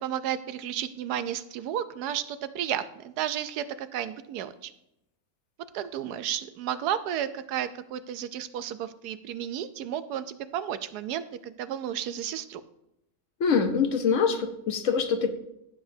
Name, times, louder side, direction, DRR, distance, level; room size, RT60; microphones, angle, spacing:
voice 1, 0.0-4.7 5.7-12.6, right 10 dB, 85° right, 13 dB, 1.2 m, -32 dB
voice 2, 13.4-15.4, left 6 dB, 60° left, 7 dB, 0.9 m, -24 dB
15.5 x 7.1 x 2.7 m, 0.84 s
omnidirectional pair, 1.6 m